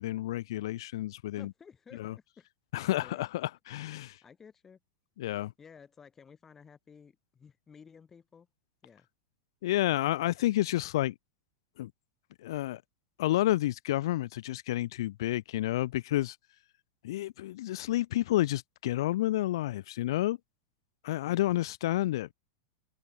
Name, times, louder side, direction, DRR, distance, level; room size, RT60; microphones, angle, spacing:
voice 1, 0.0-1.5 2.0-2.1 2.7-4.2 5.2-5.5 9.6-11.1 11.8-11.9 12.4-12.8 13.2-16.4 17.0-20.4 21.0-22.3, left 15 dB, 55° left, 1.4 m, -30 dB
voice 2, 1.4-2.0 2.4-2.5 3.0-3.3 4.0-4.8 5.6-8.5 8.8-9.1 21.2-21.6, left 6 dB, 10° left, 3.6 m, -54 dB
supercardioid pair, 180°, 3 cm